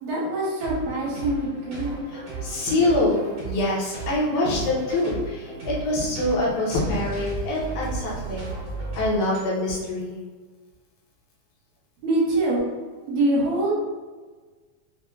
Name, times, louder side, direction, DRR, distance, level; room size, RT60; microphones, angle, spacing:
voice 1, 0.0-2.0 12.0-12.6 13.1-13.7, right 1 dB, 70° right, -6 dB, 1.9 m, -24 dB
sound 1, 0.6-9.4, right 3 dB, 55° right, 2.0 m, -35 dB
voice 2, 2.1-8.5 8.9-10.2, left 2 dB, 80° left, -5 dB, 2.3 m, -25 dB
5.6 x 2.1 x 2.3 m, 1.3 s
omnidirectional pair, 3.5 m